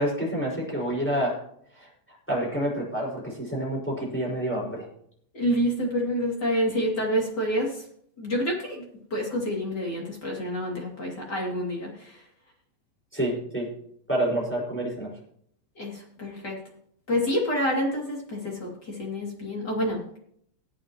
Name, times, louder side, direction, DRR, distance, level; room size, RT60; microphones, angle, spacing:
voice 1, 0.0-1.4 1.8-1.9 2.3-4.8 13.1-13.7 14.1-15.1, right 1 dB, ahead, -3 dB, 4.3 m, -28 dB
voice 2, 5.3-7.8 8.2-8.8 9.1-12.2 15.8-16.5 17.1-20.2, equal, 30° left, -2 dB, 2.0 m, -28 dB
20.0 x 8.8 x 3.0 m, 0.66 s
omnidirectional pair, 5.7 m